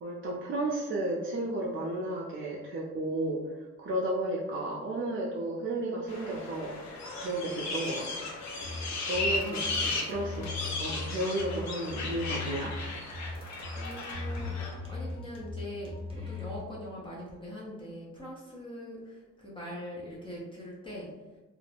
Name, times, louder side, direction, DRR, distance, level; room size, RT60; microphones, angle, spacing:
voice 1, 0.0-6.8 7.2-8.3 9.1-9.6 9.9-12.7, right 1 dB, 45° right, -4 dB, 0.5 m, -33 dB
sound 1, 6.1-14.7, left 3 dB, 65° left, 0.7 m, -36 dB
sound 2, 8.6-16.6, left 3 dB, 20° right, 0.8 m, -39 dB
voice 2, 9.3-9.8 13.7-15.9 16.3-21.1, equal, 15° left, -7 dB, 0.6 m, -42 dB
2.4 x 2.0 x 3.2 m, 1.1 s
cardioid pair, 90°, 30 cm